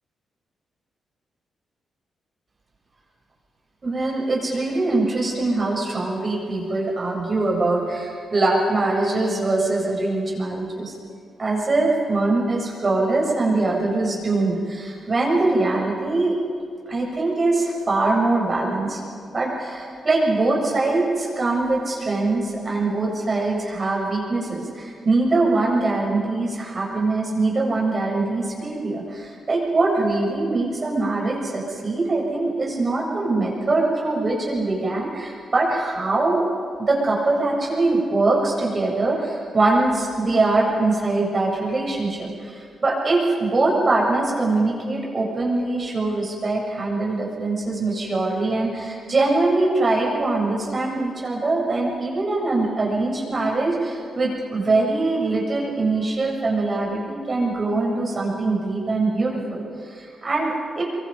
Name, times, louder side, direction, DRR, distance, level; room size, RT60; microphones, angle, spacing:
voice 1, 3.8-10.9 11.4-16.4 16.9-19.0 19.3-36.5 36.9-60.8, right 2 dB, 40° right, -2 dB, 7.5 m, -22 dB
23.5 x 23.5 x 5.2 m, 2.3 s
supercardioid pair, 50°, 0 cm